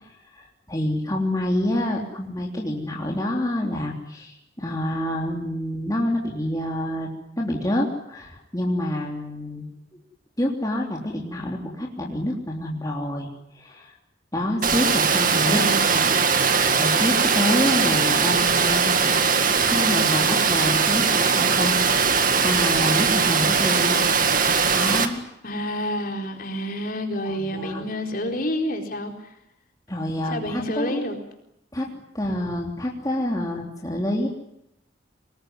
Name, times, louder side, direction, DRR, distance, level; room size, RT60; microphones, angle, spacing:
voice 1, 0.0-7.1 7.4-9.7 10.4-13.3 13.6-13.9 14.3-15.6 15.9-18.9 19.6-24.0 24.6-25.2 27.2-27.9 28.3-28.4 29.9-31.1 31.7-34.3, left 1 dB, 20° left, -1 dB, 3.3 m, -27 dB
Water, 14.6-25.1, right 5 dB, 45° right, 2.1 m, -20 dB
voice 2, 15.4-15.9 25.4-29.3 30.2-31.2, equal, 45° left, 3 dB, 4.3 m, -29 dB
25.5 x 20.5 x 9.5 m, 0.81 s
head